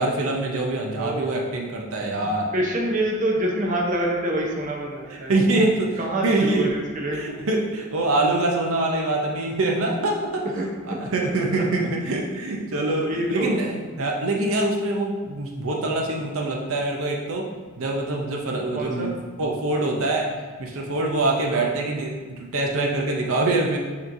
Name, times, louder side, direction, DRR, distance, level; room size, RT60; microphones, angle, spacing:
voice 1, 0.0-2.5 5.1-6.7 7.1-10.4 10.9-17.5 17.8-20.3 20.6-23.8, right 2 dB, 85° right, 0 dB, 0.6 m, -24 dB
voice 2, 1.0-1.3 2.1-2.3 2.5-5.3 6.0-7.3 10.6-11.6 13.0-13.5 18.7-19.1 21.5-21.7, right 1 dB, 40° right, -1 dB, 0.7 m, -27 dB
6.8 x 3.0 x 2.6 m, 1.4 s
head